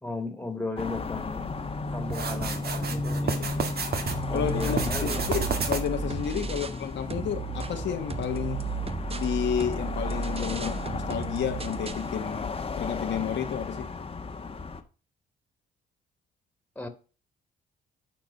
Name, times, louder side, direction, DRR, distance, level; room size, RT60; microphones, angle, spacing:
voice 1, 0.0-1.5 1.9-3.5 4.1-5.3 6.4-6.6 16.8-16.9, left 2 dB, 5° left, 2.2 m, -36 dB
sound 1, 0.8-14.8, left 3 dB, 30° left, 1.3 m, -34 dB
sound 2, 2.1-4.2 4.6-6.1, right 5 dB, 50° right, 1.9 m, -31 dB
voice 2, 3.2-3.5 4.3-4.8 5.3-8.6 9.1-13.9, left 8 dB, 65° left, 1.3 m, -31 dB
sound 3, 4.1-6.8 7.1-12.1, right 5 dB, 30° right, 0.9 m, -34 dB
11.0 x 4.6 x 5.5 m
cardioid pair, 90°, 20 cm